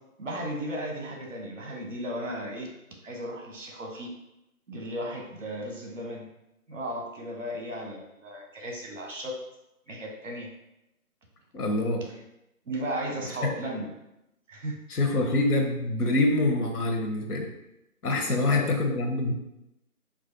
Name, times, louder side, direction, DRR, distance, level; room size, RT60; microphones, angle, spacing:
voice 1, 0.2-2.7 3.0-4.1 4.7-6.2 6.7-9.3 9.9-10.5 12.7-13.9 14.5-14.8 18.1-18.7, equal, 55° right, 0 dB, 0.9 m, -35 dB
voice 2, 11.5-12.0 14.9-17.5 18.0-19.3, left 2 dB, 85° left, 2 dB, 0.9 m, -25 dB
3.8 x 2.4 x 2.5 m, 0.89 s
figure-of-eight pair, 165°, 44 cm